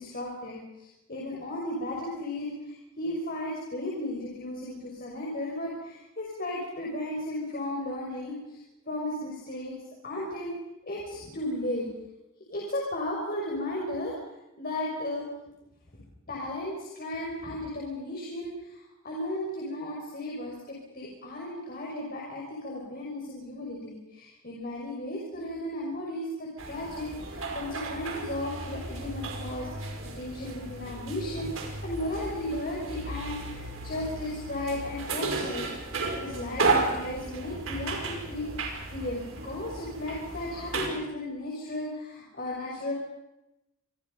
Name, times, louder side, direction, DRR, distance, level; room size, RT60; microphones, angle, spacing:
voice 1, 0.0-8.6 8.9-9.8 10.0-10.5 10.9-11.9 12.5-14.1 14.6-15.2 16.3-35.7 36.2-42.9, left 1 dB, 45° left, -3 dB, 5.9 m, -35 dB
sound 1, 26.6-40.9, right 3 dB, 70° right, 5.4 m, -34 dB
29.0 x 24.0 x 5.5 m, 0.92 s
head